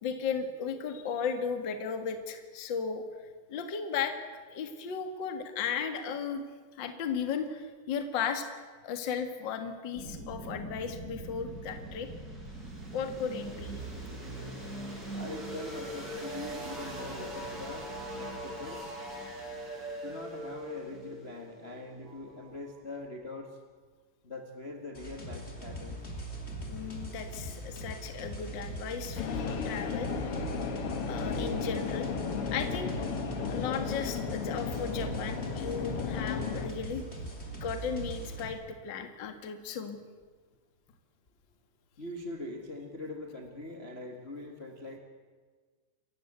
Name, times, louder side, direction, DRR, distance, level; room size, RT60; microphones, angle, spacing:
voice 1, 0.0-3.0 3.5-4.2 4.5-6.4 6.7-8.4 8.8-12.1 12.9-13.7 26.7-30.1 31.1-32.1 32.5-32.9 33.5-37.0 37.6-40.0, left 6 dB, 45° left, 7 dB, 1.6 m, -35 dB
sound 1, 9.9-22.8, right 1 dB, 20° right, 6.8 m, -41 dB
voice 2, 15.1-18.9 20.0-23.6 24.2-26.0 42.0-45.0, left 2 dB, 75° left, 3 dB, 0.5 m, -42 dB
sound 2, 24.9-38.5, right 2 dB, 15° left, 3.2 m, -41 dB
sound 3, 29.2-36.7, left 6 dB, 60° left, 1.5 m, -34 dB
28.5 x 15.0 x 8.1 m, 1.5 s
omnidirectional pair, 4.8 m